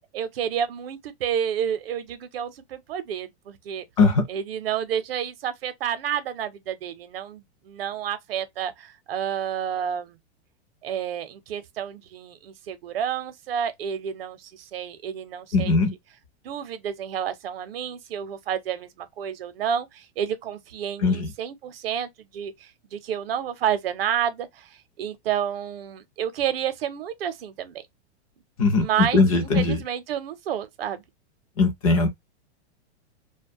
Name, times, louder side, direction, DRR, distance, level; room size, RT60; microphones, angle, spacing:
voice 1, 0.1-3.8 4.3-10.2 10.8-15.7 16.4-24.7 25.0-27.8 28.8-31.0, right 9 dB, 60° right, 0.6 m, -30 dB
voice 2, 15.5-15.9 21.0-21.3 28.6-28.9 29.1-29.8 31.6-32.1, left 3 dB, 35° left, 0.5 m, -19 dB
2.5 x 2.2 x 2.5 m
supercardioid pair, 180°, 34 cm